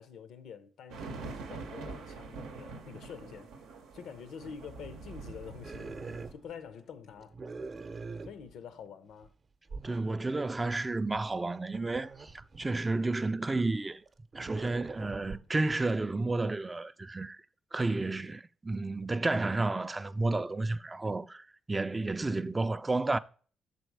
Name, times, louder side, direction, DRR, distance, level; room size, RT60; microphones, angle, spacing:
voice 1, 0.0-6.0 6.3-7.4 8.2-9.3, left 7 dB, 80° left, 0.5 m, -47 dB
sound 1, 0.9-6.3, right 4 dB, 90° right, 0.7 m, -44 dB
sound 2, 5.6-6.8 7.2-8.9 9.2-9.3 9.7-10.0 10.6-13.4 14.1-16.0, right 4 dB, 45° right, 0.7 m, -44 dB
voice 2, 9.8-14.0 14.3-17.4 17.7-23.2, right 2 dB, 25° right, 0.3 m, -31 dB
6.3 x 4.1 x 4.7 m
supercardioid pair, 60°, 0 cm